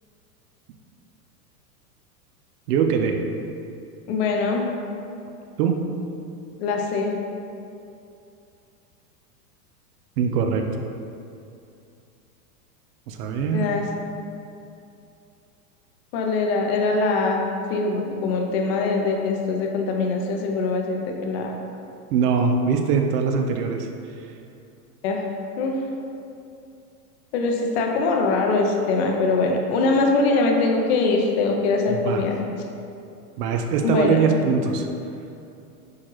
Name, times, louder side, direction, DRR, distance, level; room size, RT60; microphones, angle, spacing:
voice 1, 2.7-3.2 5.6-5.7 10.2-10.6 13.1-13.6 22.1-23.9 31.9-32.2 33.4-34.9, right 6 dB, 80° right, 4 dB, 0.5 m, -22 dB
voice 2, 4.1-4.7 6.6-7.1 13.5-13.8 16.1-17.4 17.7-21.5 25.0-25.3 25.6-25.8 27.3-32.3 33.8-34.2, left 3 dB, 45° left, 1 dB, 0.5 m, -22 dB
4.5 x 2.3 x 3.0 m, 2.6 s
supercardioid pair, 145°, 46 cm